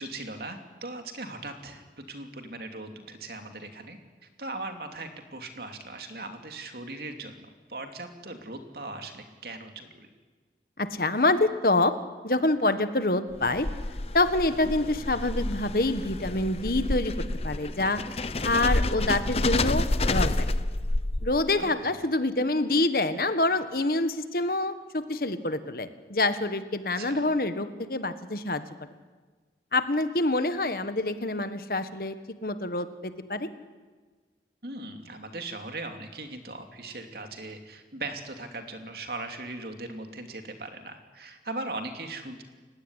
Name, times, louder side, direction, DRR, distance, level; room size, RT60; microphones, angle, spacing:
voice 1, 0.0-4.0 4.4-10.1 21.5-21.9 26.9-27.2 34.6-42.4, right 2 dB, 60° right, 5 dB, 2.9 m, -39 dB
voice 2, 10.8-11.9 12.2-13.7 14.1-17.1 17.4-18.0 18.4-19.8 20.1-20.5 21.2-28.6 29.7-32.2 32.4-33.5, left 2 dB, 55° left, 10 dB, 1.5 m, -26 dB
sound 1, 13.3-21.6, left 2 dB, 35° left, 0.8 m, -29 dB
30.0 x 16.5 x 9.9 m, 1.4 s
head